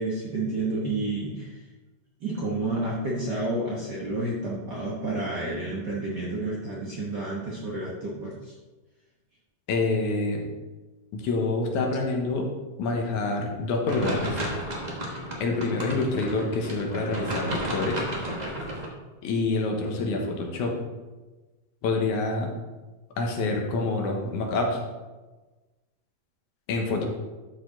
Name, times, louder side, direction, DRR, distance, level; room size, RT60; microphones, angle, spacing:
voice 1, 0.0-1.6 2.2-8.5, right 2 dB, 55° right, -4 dB, 1.2 m, -30 dB
voice 2, 9.7-10.4 11.1-12.5 12.8-14.4 15.4-18.0 19.2-20.7 21.8-22.5 23.2-24.8 26.7-27.1, left 3 dB, 80° left, 1 dB, 2.6 m, -27 dB
sound 1, 13.9-18.9, right 1 dB, 85° right, 0.3 m, -33 dB
11.5 x 4.8 x 3.9 m, 1.2 s
omnidirectional pair, 3.4 m